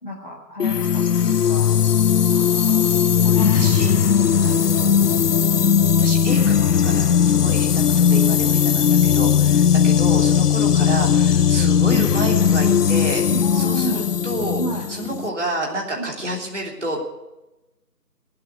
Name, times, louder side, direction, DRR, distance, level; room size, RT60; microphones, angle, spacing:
voice 1, 0.0-1.7 3.2-4.6 13.3-14.1 14.6-14.9 16.0-16.1, equal, 30° left, -3 dB, 1.6 m, -32 dB
sound 1, 0.6-15.3, left 8 dB, 70° left, 0.6 m, -18 dB
voice 2, 2.3-3.1 3.5-4.0 4.4-5.1 6.0-13.2 13.5-14.6 14.9-17.0, right 1 dB, 45° right, -1 dB, 3.3 m, -30 dB
18.5 x 8.7 x 8.1 m, 1.0 s
figure-of-eight pair, 165°, 48 cm